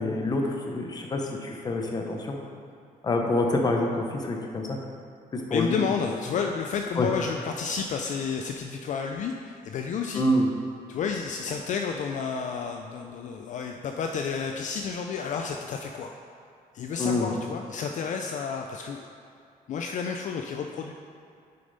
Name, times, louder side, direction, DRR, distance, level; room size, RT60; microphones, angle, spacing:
voice 1, 0.0-2.4 3.0-4.8 5.3-5.8 7.0-7.1 10.1-10.5 17.0-17.3, left 1 dB, 25° left, 1 dB, 0.7 m, -26 dB
voice 2, 5.5-10.2 10.9-16.1 16.7-19.1 19.7-20.9, left 6 dB, 55° left, 3 dB, 0.4 m, -31 dB
6.6 x 5.2 x 4.0 m, 2.4 s
cardioid pair, 145°, 15 cm